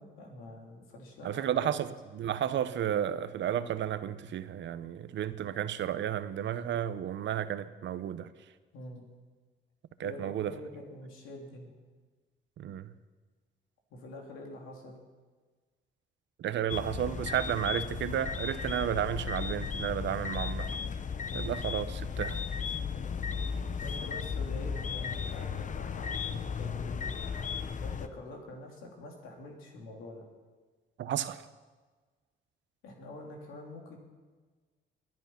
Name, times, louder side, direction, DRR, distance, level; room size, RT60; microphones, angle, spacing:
voice 1, 0.0-1.9 8.7-9.1 10.0-11.7 13.9-15.0 21.3-21.5 22.9-23.4 23.8-27.1 27.8-30.3 32.8-34.0, left 1 dB, 90° left, 3.4 m, -46 dB
voice 2, 1.2-1.9 2.1-8.3 10.0-10.5 12.6-12.9 16.4-20.7 21.3-22.4 31.0-31.5, right 10 dB, 70° right, 0.9 m, -32 dB
sound 1, 16.7-28.1, left 6 dB, 40° left, 0.9 m, -35 dB
22.0 x 11.0 x 5.9 m
cardioid pair, 90°, 20 cm